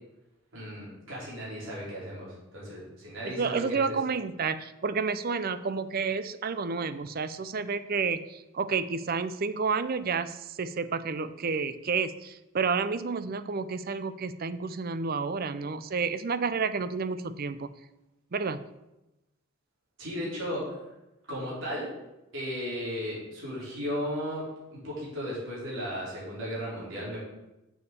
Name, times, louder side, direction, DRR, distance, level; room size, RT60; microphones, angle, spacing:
voice 1, 0.5-4.0 20.0-20.8 21.3-21.9 22.3-27.2, equal, 65° right, -6 dB, 4.2 m, -35 dB
voice 2, 3.2-17.7 18.3-18.6, right 5 dB, 45° right, 13 dB, 0.5 m, -30 dB
7.2 x 6.9 x 6.9 m, 0.96 s
head